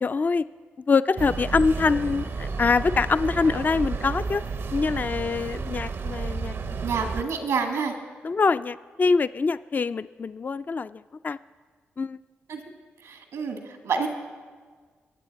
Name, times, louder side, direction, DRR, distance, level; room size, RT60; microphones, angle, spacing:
voice 1, 0.0-0.4 0.9-4.4 4.7-6.6 8.2-11.4 12.0-12.2, left 4 dB, 35° left, 14 dB, 0.3 m, -24 dB
sound 1, 1.2-7.2, right 4 dB, 60° right, 0.7 m, -31 dB
voice 2, 6.8-8.0 12.5-12.6 13.0-14.1, right 5 dB, 85° right, 4 dB, 1.7 m, -28 dB
22.0 x 8.2 x 4.1 m, 1.5 s
supercardioid pair, 45°, 5 cm